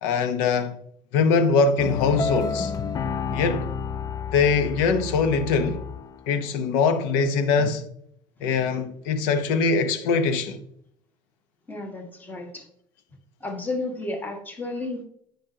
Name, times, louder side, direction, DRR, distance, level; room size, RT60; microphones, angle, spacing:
voice 1, 0.0-0.8 1.1-2.7 3.3-3.6 4.3-5.8 6.3-7.8 8.4-10.6, left 5 dB, 90° left, 0.9 m, -22 dB
sound 1, 1.8-6.3, left 6 dB, 35° left, 0.4 m, -30 dB
voice 2, 3.3-3.7 7.6-7.8 8.4-8.5 11.7-12.7 13.4-15.1, left 2 dB, 15° left, 1.7 m, -33 dB
10.0 x 5.2 x 2.9 m
cardioid pair, 125°, 11 cm